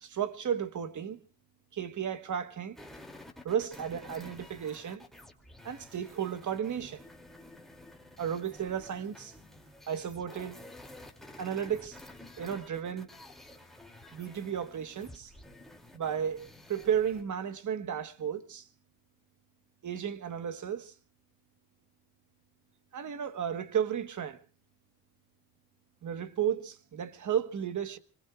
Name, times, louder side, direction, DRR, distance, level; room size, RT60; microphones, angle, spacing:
voice 1, 0.0-1.2 1.7-2.8 3.4-5.0 5.6-7.0 8.2-9.3 9.9-10.6 11.4-12.0 12.4-13.1 14.1-15.3 15.9-18.7 19.8-20.9 22.9-24.4 26.0-28.0, right 8 dB, 45° right, 1.4 m, -33 dB
sound 1, 2.7-17.2, left 1 dB, ahead, 2.8 m, -51 dB
26.5 x 21.0 x 2.4 m
cardioid pair, 100°, 40 cm